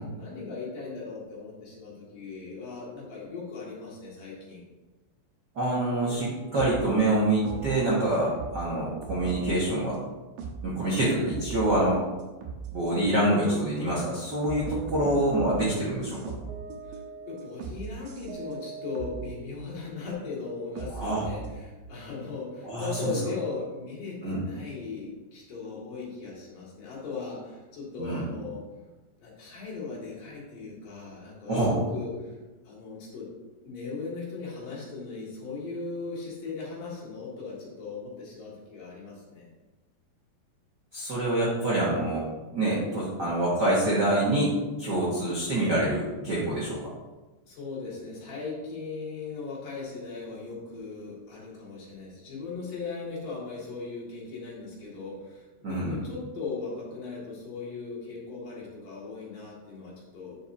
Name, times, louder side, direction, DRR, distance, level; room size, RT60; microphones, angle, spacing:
voice 1, 0.1-4.6 8.2-8.4 15.0-15.2 16.8-17.0 17.3-28.6 29.2-32.4 32.7-33.3 33.7-39.5 47.5-60.4, left 4 dB, 65° left, -6 dB, 3.6 m, -38 dB
voice 2, 5.5-10.0 10.6-12.0 12.7-16.2 20.9-21.2 22.6-23.2 24.2-24.4 28.0-28.2 31.5-31.7 40.9-42.2 42.5-44.5 44.8-46.8 55.6-56.0, right 1 dB, 55° right, -7 dB, 1.1 m, -26 dB
sound 1, 6.0-6.9 7.5-8.7 9.0-10.7 11.1-12.1 12.4-14.0 14.4-19.4 20.1-21.6, right 6 dB, 85° right, 2.8 m, -39 dB
9.6 x 5.8 x 2.7 m, 1.2 s
omnidirectional pair, 4.1 m